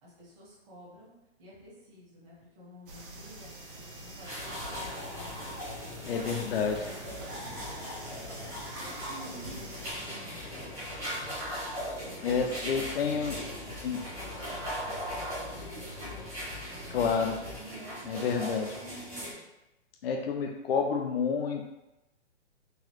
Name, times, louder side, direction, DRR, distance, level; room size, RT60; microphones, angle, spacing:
voice 1, 0.0-5.4 6.0-8.0 8.4-8.5 8.8-11.0 12.1-16.3 16.7-17.2 17.6-19.4, right 1 dB, 30° right, -7 dB, 1.4 m, -51 dB
sound 1, 2.9-9.9, right 2 dB, 50° right, 0.9 m, -46 dB
sound 2, 4.2-19.3, equal, 10° right, 0.9 m, -40 dB
sound 3, 4.4-17.6, left 4 dB, 85° left, 0.9 m, -46 dB
voice 2, 6.0-6.8 12.2-13.4 13.8-14.0 16.9-17.4 18.1-18.7 20.0-21.6, left 6 dB, 60° left, 2 dB, 0.5 m, -29 dB
3.9 x 2.7 x 3.0 m, 0.93 s
hypercardioid pair, 155°, 34 cm